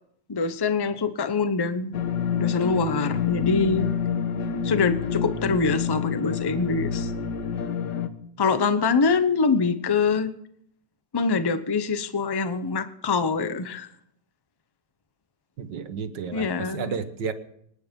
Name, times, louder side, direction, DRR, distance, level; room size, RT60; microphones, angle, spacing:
voice 1, 0.3-2.0 2.4-3.9 4.6-7.1 8.4-10.3 11.1-13.9 16.3-16.9, left 4 dB, 25° left, 11 dB, 0.5 m, -24 dB
sound 1, 1.9-8.1, left 7 dB, 70° left, 1.7 m, -27 dB
voice 2, 15.6-17.3, right 6 dB, 70° right, 9 dB, 1.9 m, -32 dB
25.5 x 10.0 x 5.3 m, 0.72 s
omnidirectional pair, 2.0 m